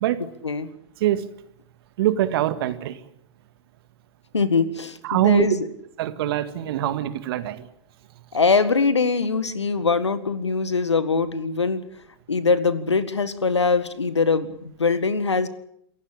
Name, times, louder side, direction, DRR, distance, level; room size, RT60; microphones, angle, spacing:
voice 1, 2.0-3.0 5.0-5.5 6.0-7.7, right 13 dB, 60° right, 12 dB, 2.1 m, -23 dB
voice 2, 4.3-5.7 8.3-11.8 12.3-15.5, left 4 dB, 90° left, 14 dB, 1.8 m, -22 dB
28.0 x 15.5 x 8.6 m, 0.69 s
hypercardioid pair, 100°, 14 cm